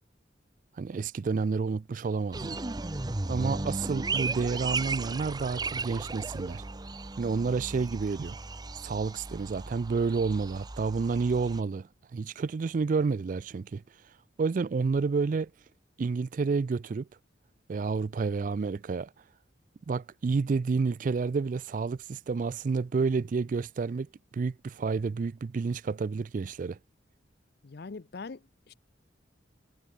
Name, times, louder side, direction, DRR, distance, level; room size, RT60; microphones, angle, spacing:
voice 1, 0.8-2.6 3.3-6.6 7.2-8.4 8.8-13.8 14.4-15.5 16.0-17.1 17.7-19.1 19.9-24.1 24.3-26.8, right 4 dB, 45° right, 0.3 m, -30 dB
sound 1, 2.3-11.6, right 3 dB, 20° right, 0.7 m, -35 dB
voice 2, 27.6-28.7, left 4 dB, 55° left, 0.6 m, -42 dB
head